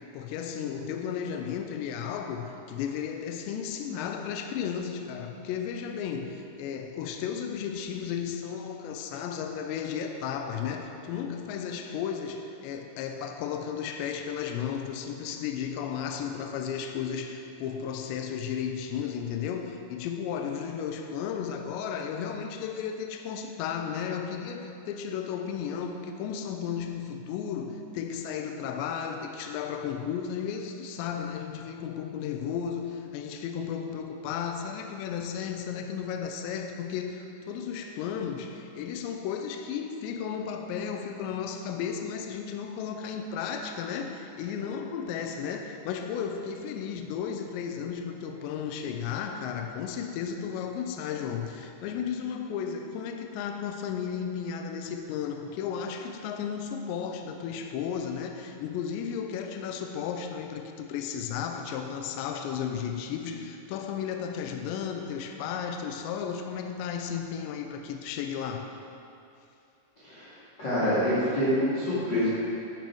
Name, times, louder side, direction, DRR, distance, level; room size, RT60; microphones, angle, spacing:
voice 1, 0.0-68.7, left 7 dB, 85° left, 5 dB, 2.8 m, -34 dB
voice 2, 70.6-72.3, equal, 35° left, -12 dB, 2.1 m, -26 dB
11.5 x 9.5 x 4.6 m, 2.7 s
omnidirectional pair, 5.3 m